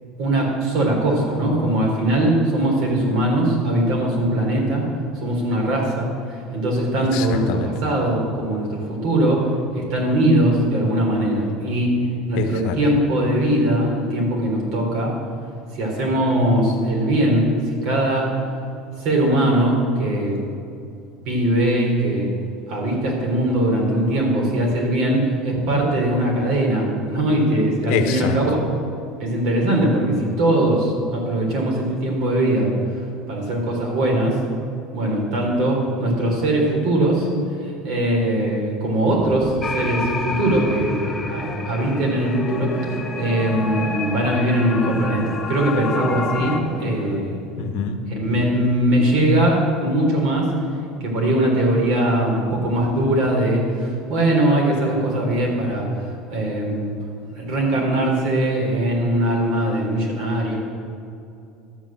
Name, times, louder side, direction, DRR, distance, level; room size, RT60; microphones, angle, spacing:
voice 1, 0.2-4.9 5.2-9.5 9.7-11.9 12.3-15.1 15.7-17.5 17.8-18.3 19.0-20.4 21.3-22.3 22.7-28.6 29.2-32.7 33.3-34.4 34.9-37.3 37.6-47.4 48.1-50.5 51.0-55.9 56.3-56.9 57.3-60.6, right 1 dB, 55° right, -1 dB, 3.9 m, -21 dB
voice 2, 7.1-7.7 12.4-12.8 27.9-28.4 47.6-48.0, left 6 dB, 70° left, 6 dB, 1.2 m, -25 dB
sound 1, 39.2-47.2, left 1 dB, 30° left, 2.4 m, -34 dB
sound 2, 39.6-46.6, left 4 dB, 15° left, 0.8 m, -30 dB
12.5 x 8.6 x 7.4 m, 2.6 s
cardioid pair, 155°, 0 cm